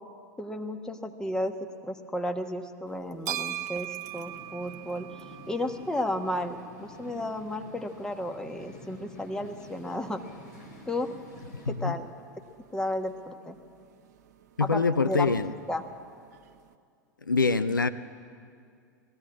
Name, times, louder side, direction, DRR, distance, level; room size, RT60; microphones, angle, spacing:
voice 1, 0.4-10.2 10.9-11.1 11.6-12.1 12.7-13.6 14.6-15.4 15.7-15.8, left 1 dB, 5° left, 5 dB, 1.4 m, -33 dB
sound 1, 2.9-16.7, right 12 dB, 60° right, 0.9 m, -44 dB
sound 2, 4.0-11.7, left 1 dB, 65° left, 5.3 m, -49 dB
voice 2, 14.6-15.5 17.3-17.9, left 4 dB, 85° left, 14 dB, 0.6 m, -24 dB
20.5 x 15.0 x 8.5 m, 2.3 s
figure-of-eight pair, 90°, 10 cm